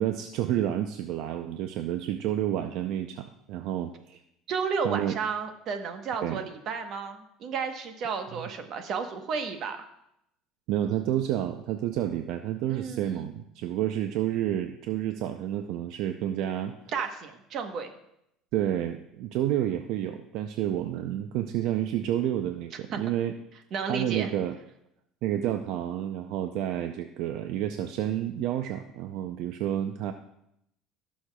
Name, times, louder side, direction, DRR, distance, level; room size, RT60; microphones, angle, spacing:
voice 1, 0.0-4.2 4.8-5.2 6.2-6.4 8.3-8.5 10.7-16.7 18.5-23.3 23.9-24.6 25.2-30.1, right 11 dB, 70° right, 7 dB, 0.5 m, -30 dB
voice 2, 4.5-9.8 12.7-13.3 16.9-17.9 22.9-23.0 23.7-24.3, right 5 dB, 50° right, 6 dB, 1.0 m, -32 dB
17.5 x 6.4 x 2.3 m, 0.79 s
cardioid pair, 135°, 0 cm